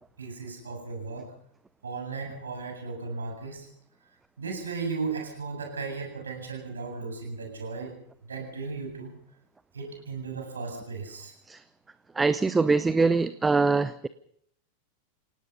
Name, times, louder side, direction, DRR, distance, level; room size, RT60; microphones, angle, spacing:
voice 1, 0.2-1.3 1.8-3.7 4.4-8.0 8.3-9.1 9.7-11.3, right 4 dB, 70° right, 3 dB, 7.6 m, -35 dB
voice 2, 12.2-14.1, right 4 dB, 10° right, 15 dB, 0.8 m, -23 dB
28.5 x 18.0 x 5.5 m, 0.67 s
figure-of-eight pair, 90°, 0 cm